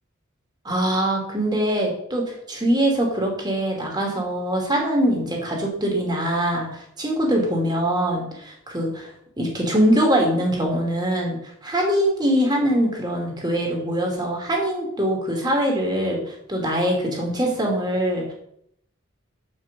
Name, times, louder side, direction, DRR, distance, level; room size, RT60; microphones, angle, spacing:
voice 1, 0.6-9.1 9.4-18.3, right 1 dB, 20° right, 0 dB, 2.6 m, -23 dB
6.6 x 6.1 x 7.3 m, 0.70 s
head